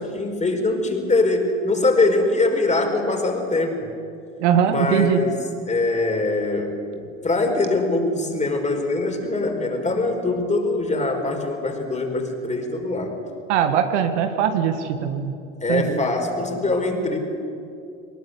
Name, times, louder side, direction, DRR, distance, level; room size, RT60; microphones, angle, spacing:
voice 1, 0.0-3.9 4.6-5.3 5.7-13.1 15.6-17.2, left 2 dB, 20° left, 3 dB, 4.8 m, -23 dB
voice 2, 4.4-5.2 13.5-15.3 15.7-16.0, right 8 dB, 70° right, 7 dB, 2.0 m, -21 dB
22.5 x 20.0 x 8.2 m, 2.5 s
hypercardioid pair, 75°, 37 cm